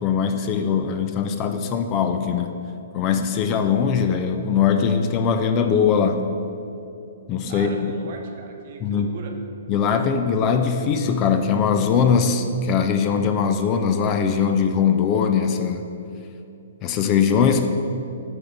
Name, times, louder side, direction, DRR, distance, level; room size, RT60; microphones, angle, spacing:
voice 1, 0.0-2.5 2.9-6.3 7.3-7.7 8.8-9.1 9.7-15.8 16.8-17.7, left 6 dB, 30° left, 7 dB, 0.4 m, -21 dB
voice 2, 7.5-9.3, right 4 dB, 50° right, 2 dB, 0.8 m, -38 dB
6.3 x 3.5 x 5.9 m, 2.6 s
hypercardioid pair, 130°, 0 cm